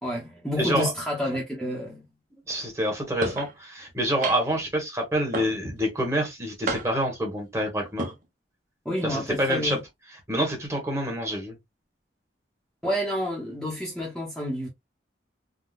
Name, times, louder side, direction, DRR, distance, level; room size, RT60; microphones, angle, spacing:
voice 1, 0.0-2.0 8.8-9.8 12.8-14.7, equal, 5° left, 0.8 m, -29 dB
voice 2, 0.6-0.9 2.5-8.1 9.0-9.8 10.1-11.5, equal, 15° right, 1.2 m, -27 dB
sound 1, 3.2-3.5 4.2-4.6 5.3-5.8 6.7-7.1 7.8-8.1, right 2 dB, 45° right, 0.7 m, -31 dB
3.6 x 2.2 x 2.4 m
head